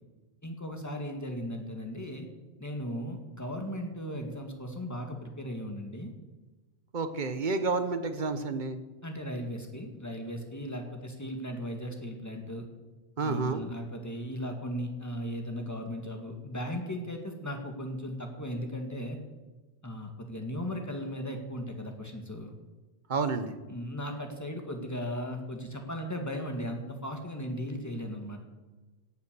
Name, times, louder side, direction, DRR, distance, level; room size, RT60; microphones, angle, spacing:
voice 1, 0.4-2.3 2.6-6.1 9.0-12.7 13.2-19.2 19.8-22.5 23.7-28.4, equal, 15° left, 3 dB, 1.8 m, -37 dB
voice 2, 6.9-8.8 13.2-13.6 23.1-23.6, right 4 dB, 40° right, 9 dB, 1.1 m, -30 dB
17.0 x 7.0 x 6.9 m, 1.2 s
omnidirectional pair, 1.3 m